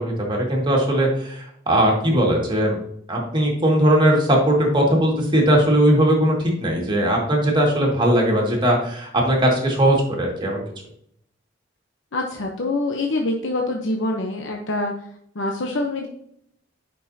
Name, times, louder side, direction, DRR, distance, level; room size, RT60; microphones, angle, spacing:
voice 1, 0.0-2.8 3.1-10.6, right 1 dB, 25° right, -1 dB, 2.0 m, -19 dB
voice 2, 12.1-15.1 15.3-16.1, left 2 dB, 75° left, 1 dB, 0.8 m, -25 dB
10.0 x 5.4 x 2.8 m, 0.70 s
head